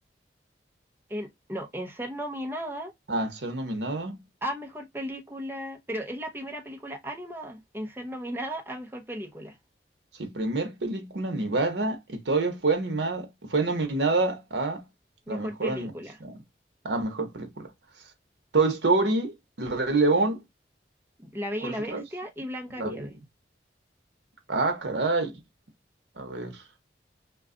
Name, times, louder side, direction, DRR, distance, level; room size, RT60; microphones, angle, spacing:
voice 1, 1.1-2.9 4.4-9.6 15.3-16.2 21.2-23.1, equal, 15° right, 0.7 m, -35 dB
voice 2, 3.1-4.2 10.2-14.8 15.3-15.9 16.2-16.4 16.8-17.7 18.5-20.4 21.6-22.0 22.8-23.1 24.5-25.4 26.2-26.6, right 3 dB, 80° right, 0.8 m, -27 dB
2.4 x 2.3 x 3.6 m
head